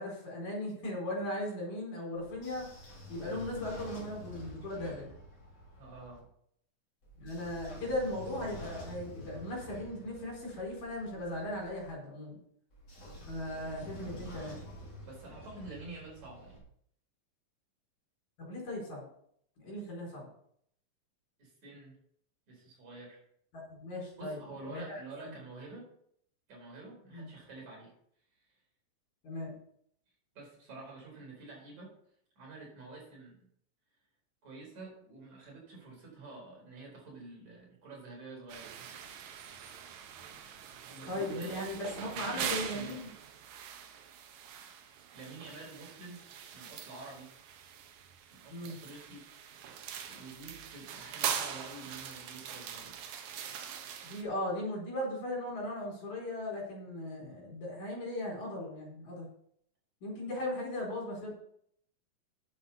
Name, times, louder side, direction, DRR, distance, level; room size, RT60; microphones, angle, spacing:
voice 1, 0.0-2.7 3.1-5.1 7.2-12.4 13.3-14.6 18.4-19.1 19.6-20.3 23.8-24.4 24.7-25.0 27.1-27.3 29.2-29.5 41.1-43.1 48.5-48.7 54.1-59.3 60.0-61.4, left 1 dB, 65° left, -4 dB, 5.8 m, -37 dB
Train / Sliding door, 2.2-6.2 7.0-11.9 12.7-16.6, left 1 dB, 30° left, 3.9 m, -48 dB
voice 2, 5.8-6.3 15.0-16.6 21.4-22.0 22.5-23.2 24.2-25.9 26.5-27.9 28.4-28.5 30.3-32.0 32.4-33.4 34.4-38.7 40.9-41.6 42.1-43.0 45.1-46.3 46.5-47.3 48.3-49.3 49.6-53.0, right 3 dB, 55° right, -2 dB, 5.8 m, -48 dB
sound 1, 38.5-54.2, right 8 dB, 80° right, 2.7 m, -42 dB
10.0 x 7.9 x 5.6 m, 0.68 s
omnidirectional pair, 4.1 m